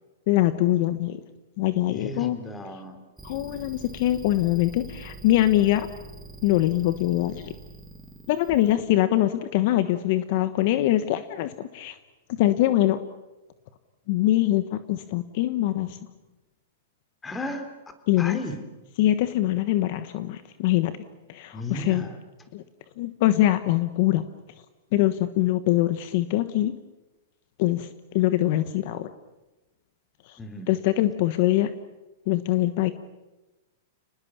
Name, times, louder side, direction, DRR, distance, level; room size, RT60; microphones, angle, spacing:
voice 1, 0.3-1.2 1.6-2.4 3.2-5.9 6.4-7.5 8.3-11.9 12.3-13.0 14.1-16.0 18.1-18.4 19.0-20.9 21.3-22.0 22.5-22.6 23.0-24.2 24.9-26.7 27.6-27.9 28.1-29.1 30.3-30.4 30.7-31.7 32.3-32.9, left 14 dB, 50° left, 11 dB, 1.2 m, -23 dB
voice 2, 1.9-3.0 17.2-17.7 18.2-18.6 21.5-22.2 30.4-30.7, left 1 dB, 15° left, 8 dB, 3.4 m, -35 dB
sound 1, 3.2-8.8, right 4 dB, 5° right, 3.1 m, -44 dB
29.5 x 20.0 x 7.4 m, 1.1 s
hypercardioid pair, 145°, 0 cm